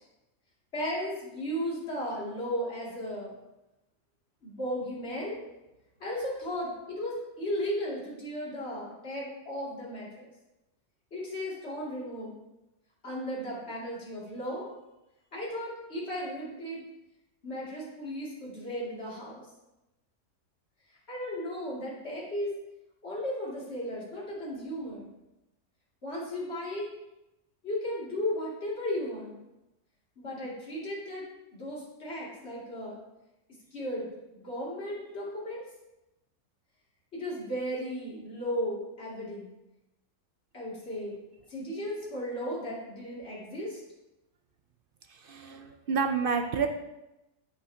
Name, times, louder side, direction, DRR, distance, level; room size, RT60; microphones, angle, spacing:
voice 1, 0.7-3.3 4.4-5.4 6.0-10.3 11.1-12.4 13.0-14.7 15.3-16.8 17.4-19.5 21.1-22.5 23.0-25.1 26.0-26.9 27.6-29.4 30.2-31.2 31.5-33.0 33.7-35.7 37.1-39.5 40.5-41.1 41.5-43.8, equal, 45° left, -6 dB, 2.7 m, -35 dB
voice 2, 45.1-46.7, right 5 dB, 65° right, 6 dB, 0.5 m, -29 dB
8.5 x 8.2 x 2.8 m, 0.95 s
omnidirectional pair, 1.6 m